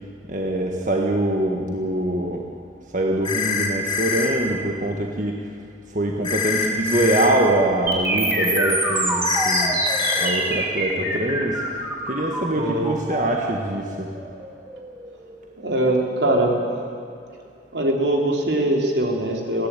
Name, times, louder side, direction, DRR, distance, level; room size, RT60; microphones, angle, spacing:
voice 1, 0.3-2.5 2.9-5.4 5.9-9.8 10.2-11.6 12.1-14.1, right 1 dB, 45° right, 0 dB, 1.7 m, -23 dB
sound 1, 3.2-4.3 6.2-7.3 9.2-10.3, left 5 dB, 25° left, 2.7 m, -24 dB
sound 2, 7.9-15.8, right 1 dB, 15° right, 5.2 m, -25 dB
voice 2, 12.5-12.9 15.6-16.6 17.7-19.7, right 1 dB, 80° right, 1 dB, 3.5 m, -22 dB
21.5 x 16.0 x 9.1 m, 2.5 s
head